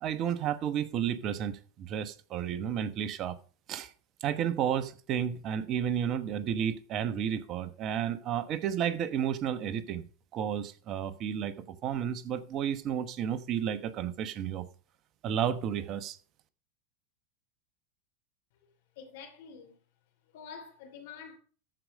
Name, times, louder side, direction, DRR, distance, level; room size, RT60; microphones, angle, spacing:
voice 1, 0.0-3.4 3.7-3.9 4.2-10.1 10.3-11.5 11.8-14.7 15.2-16.2, right 9 dB, 45° right, 1.1 m, -32 dB
voice 2, 18.9-19.8 20.2-21.4, left 6 dB, 70° left, 3.1 m, -47 dB
14.0 x 4.9 x 5.3 m
hypercardioid pair, 95°, 0 cm